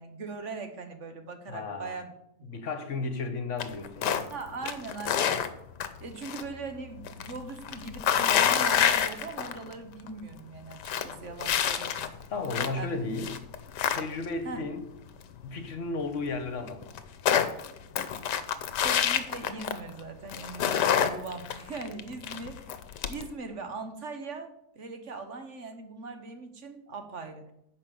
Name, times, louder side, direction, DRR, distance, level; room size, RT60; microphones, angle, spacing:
voice 1, 0.0-2.1 2.4-2.5 4.3-5.4 6.0-12.1 12.7-13.0 14.4-14.6 18.8-22.6 23.1-27.5, right 4 dB, 50° right, 7 dB, 1.4 m, -40 dB
voice 2, 1.5-2.0 2.4-4.3 12.3-13.4 13.9-14.8 15.4-17.0, left 3 dB, 50° left, 7 dB, 1.4 m, -34 dB
sound 1, 3.6-4.3 4.6-6.5 6.7-9.7 10.1-10.2 10.6-12.8 13.2-14.4 16.0-16.1 16.3-16.4 16.7-20.0 20.3-23.3, left 9 dB, 85° left, 1.4 m, -27 dB
10.5 x 5.2 x 7.6 m, 0.78 s
omnidirectional pair, 1.8 m